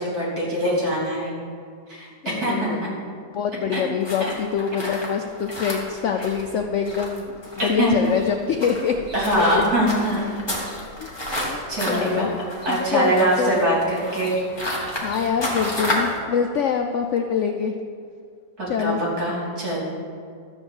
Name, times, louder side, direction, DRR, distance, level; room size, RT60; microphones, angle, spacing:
voice 1, 0.0-1.3 1.9-2.9 3.7-3.8 7.6-8.1 9.1-10.3 11.7-12.3 12.7-14.3 18.6-19.8, right 1 dB, 60° right, -6 dB, 3.7 m, -23 dB
voice 2, 2.2-2.9 3.3-7.4 7.6-8.9 9.4-9.7 10.3-10.4 11.0-11.1 11.5-11.6 11.9-12.3 12.7-13.6 15.0-17.7 18.7-19.0, left 7 dB, 70° left, 5 dB, 0.7 m, -25 dB
sound 1, 4.0-16.2, left 1 dB, 15° left, 1.7 m, -31 dB
12.5 x 4.5 x 7.7 m, 2.2 s
omnidirectional pair, 1.8 m